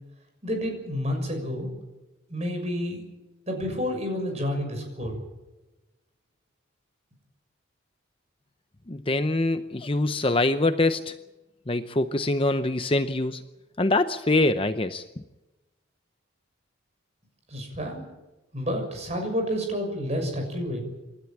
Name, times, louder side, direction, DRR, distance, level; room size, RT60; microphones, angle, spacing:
voice 1, 0.4-1.7 2.3-3.0 3.5-5.2 17.5-18.0 18.5-20.8, equal, 35° right, 4 dB, 6.6 m, -29 dB
voice 2, 8.9-11.1 11.7-13.4 13.8-15.0, left 2 dB, 25° left, 10 dB, 0.7 m, -24 dB
27.5 x 13.0 x 8.9 m, 1.1 s
head